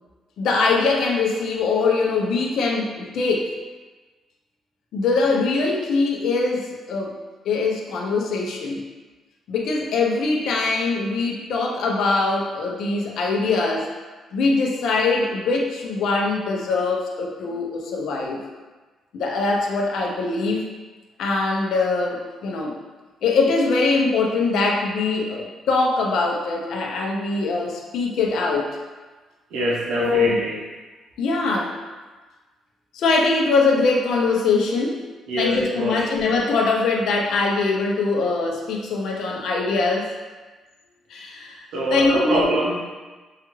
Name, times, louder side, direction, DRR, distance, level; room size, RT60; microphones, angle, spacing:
voice 1, 0.4-3.5 4.9-7.2 7.4-8.8 9.5-13.9 14.3-18.4 19.1-20.7 21.2-22.8 23.2-28.8 29.9-30.4 31.2-31.8 32.9-35.0 35.4-40.1 41.1-42.6, left 3 dB, 75° left, -1 dB, 0.6 m, -22 dB
voice 2, 29.5-30.6 35.3-36.0 41.7-42.8, right 1 dB, 90° right, -3 dB, 0.9 m, -23 dB
5.5 x 2.4 x 3.0 m, 1.3 s
cardioid pair, 90°, 0 cm